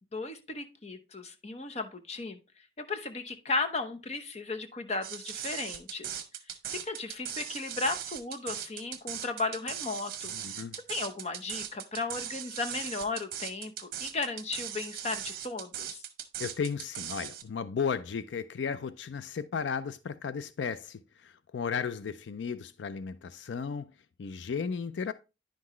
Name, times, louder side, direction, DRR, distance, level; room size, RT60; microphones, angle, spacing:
voice 1, 0.1-2.4 2.8-6.2 6.7-10.6 10.9-16.0, left 3 dB, 35° left, 0.8 m, -35 dB
sound 1, 5.0-17.4, right 10 dB, 55° right, 1.0 m, -39 dB
voice 2, 10.3-10.8 16.4-23.9 24.2-25.1, left 6 dB, 75° left, 0.4 m, -34 dB
10.0 x 5.8 x 3.1 m
head